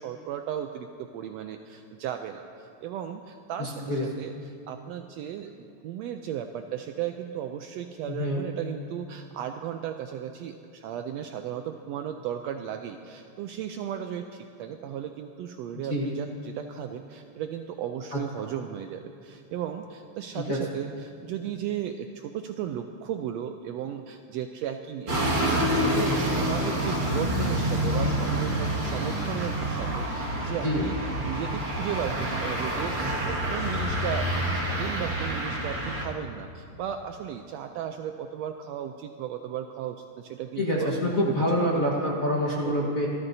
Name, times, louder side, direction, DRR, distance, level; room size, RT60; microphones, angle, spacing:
voice 1, 0.0-41.7 41.9-42.1, right 9 dB, 80° right, 6 dB, 1.5 m, -35 dB
voice 2, 3.6-4.0 8.2-8.4 15.9-16.1 18.1-18.2 20.3-20.6 30.6-30.8 40.6-43.1, left 1 dB, 45° left, -4 dB, 1.2 m, -26 dB
sound 1, 25.1-36.0, right 1 dB, 30° right, 1.7 m, -27 dB
27.5 x 12.5 x 2.7 m, 2.5 s
omnidirectional pair, 3.4 m